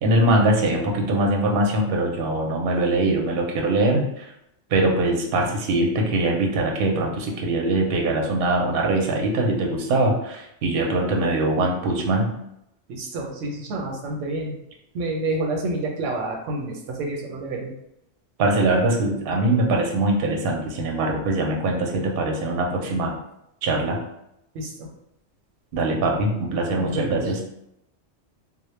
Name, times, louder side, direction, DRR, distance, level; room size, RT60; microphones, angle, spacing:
voice 1, 0.0-4.2 4.7-12.3 18.4-23.2 23.6-24.0 25.7-27.4, right 2 dB, 60° right, 0 dB, 0.7 m, -22 dB
voice 2, 12.9-14.5 14.9-17.7 24.5-24.9 26.8-27.3, right 2 dB, 85° right, 1 dB, 0.9 m, -29 dB
2.1 x 2.0 x 3.1 m, 0.80 s
omnidirectional pair, 1.2 m